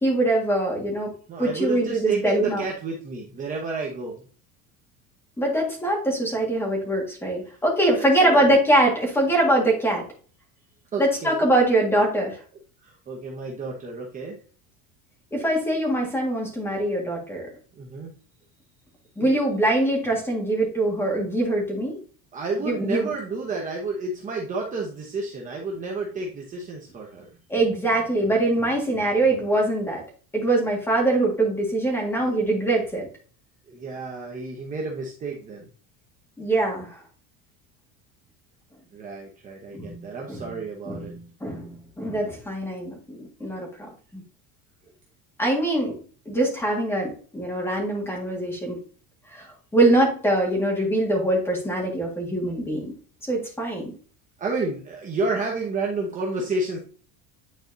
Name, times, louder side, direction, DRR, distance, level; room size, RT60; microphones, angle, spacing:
voice 1, 0.0-1.1 1.4-2.6 5.4-10.0 11.0-12.4 15.3-17.5 19.2-22.0 22.6-23.1 27.5-30.0 30.3-33.1 36.4-37.0 39.7-39.9 40.3-40.5 40.9-41.0 41.4-43.7 44.1-44.2 45.4-46.0 46.3-48.8 49.3-52.9 53.3-53.9, right 1 dB, 5° left, -1 dB, 1.8 m, -23 dB
voice 2, 1.3-4.2 7.9-8.6 10.9-11.5 12.8-14.4 17.7-18.1 19.2-19.4 22.3-27.3 32.2-32.4 33.7-35.7 38.9-41.1 54.4-56.8, right 3 dB, 20° right, -1 dB, 1.0 m, -31 dB
9.4 x 4.4 x 2.7 m, 0.41 s
cardioid pair, 175°, 37 cm